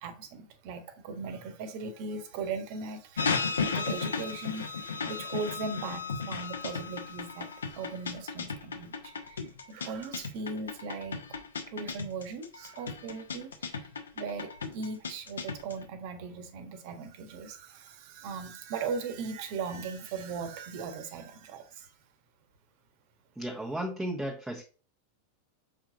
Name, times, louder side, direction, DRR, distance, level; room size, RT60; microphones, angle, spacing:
voice 1, 0.0-11.2 11.7-13.9 14.1-21.9, right 4 dB, 45° right, 1.5 m, -39 dB
sound 1, 3.2-15.8, left 5 dB, 70° left, 1.2 m, -34 dB
voice 2, 23.4-24.6, right 1 dB, 5° right, 1.4 m, -34 dB
7.3 x 5.0 x 3.9 m
figure-of-eight pair, 90°, 0 cm